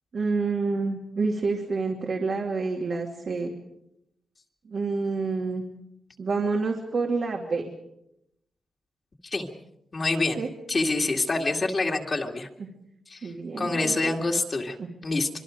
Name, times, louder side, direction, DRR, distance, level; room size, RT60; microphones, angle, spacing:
voice 1, 0.1-3.5 4.7-5.6 6.2-7.7 10.4-10.5 13.2-14.2 14.8-14.9, right 4 dB, 50° right, 0 dB, 2.7 m, -28 dB
voice 2, 9.9-10.4 10.7-12.5 13.1-13.3 13.6-14.8 15.0-15.3, left 3 dB, 30° left, 1 dB, 2.3 m, -26 dB
25.5 x 24.5 x 5.2 m, 0.80 s
wide cardioid pair, 140°, 0 cm